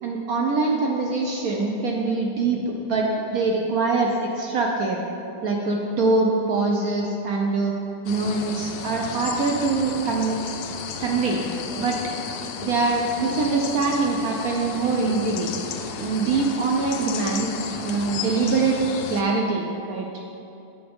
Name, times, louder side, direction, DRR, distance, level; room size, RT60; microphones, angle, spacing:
voice 1, 0.0-5.0 5.4-7.7 8.0-10.4 11.0-11.4 11.8-12.0 12.6-15.5 16.0-18.8 19.1-20.1, right 3 dB, 75° right, 0 dB, 0.8 m, -23 dB
sound 1, 8.1-19.2, left 6 dB, 75° left, 0.9 m, -33 dB
8.6 x 7.2 x 3.5 m, 2.7 s
omnidirectional pair, 2.2 m